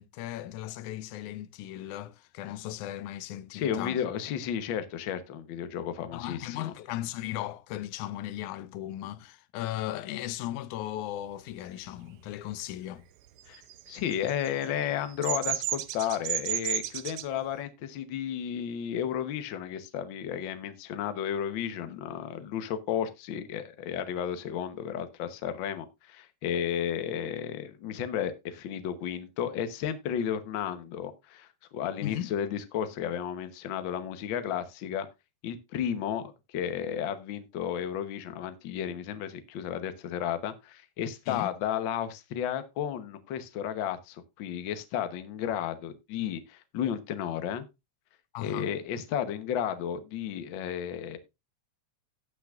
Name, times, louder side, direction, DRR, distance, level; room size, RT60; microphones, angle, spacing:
voice 1, 0.0-4.0 6.1-13.1 32.0-32.3 41.3-41.5 48.3-48.7, left 13 dB, 90° left, 2.1 m, -37 dB
voice 2, 3.5-6.7 13.5-13.6 13.9-35.1 35.4-47.6 48.4-51.2, left 9 dB, 60° left, 1.3 m, -33 dB
Bird vocalization bird call bird song, 13.5-17.3, right 12 dB, 75° right, 1.4 m, -32 dB
18.0 x 6.0 x 2.4 m
omnidirectional pair, 3.4 m